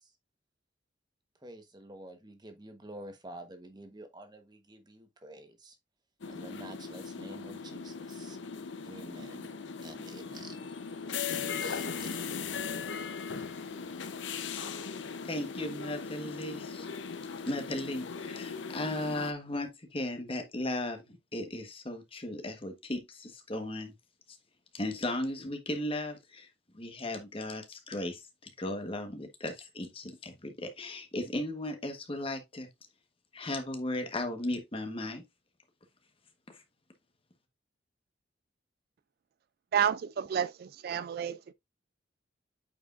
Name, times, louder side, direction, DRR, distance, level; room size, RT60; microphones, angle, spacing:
voice 1, 1.4-5.8 6.3-8.4 8.9-10.7 11.3-12.1, right 1 dB, 20° right, 1.1 m, -49 dB
sound 1, 6.2-19.3, left 5 dB, 75° left, 0.7 m, -39 dB
voice 2, 15.2-16.9 17.4-23.9 24.3-24.4 24.7-26.5 26.7-32.7 33.3-35.2 36.5-36.6, left 1 dB, 30° left, 1.2 m, -36 dB
voice 3, 39.7-41.5, right 8 dB, 55° right, 0.3 m, -30 dB
8.6 x 4.8 x 2.5 m
head